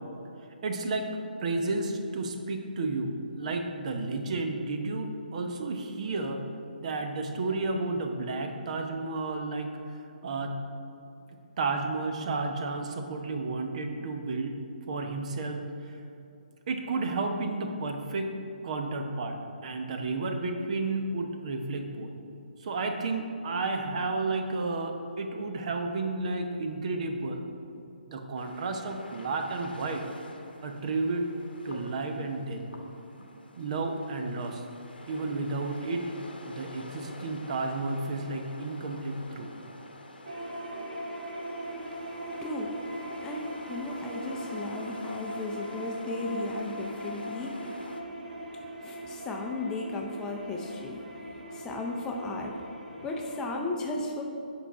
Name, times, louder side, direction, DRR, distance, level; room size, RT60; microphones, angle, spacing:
voice 1, 0.6-1.1 1.4-6.4 6.8-9.7 10.2-10.5 11.6-14.6 14.9-16.0 16.7-18.3 18.6-22.1 22.6-27.4 28.1-30.0 30.6-31.3 31.6-32.6 33.6-34.6 35.1-36.0 36.4-39.5, right 3 dB, 45° right, 5 dB, 0.8 m, -32 dB
sound 1, 28.4-48.0, left 1 dB, 85° left, 1.0 m, -48 dB
sound 2, 40.3-53.6, right 1 dB, 60° right, 1.6 m, -40 dB
voice 2, 42.0-47.8 48.8-51.1 51.5-52.6 53.0-54.2, left 2 dB, 10° left, 0 dB, 0.6 m, -35 dB
8.1 x 5.8 x 4.8 m, 2.7 s
figure-of-eight pair, 145°, 5 cm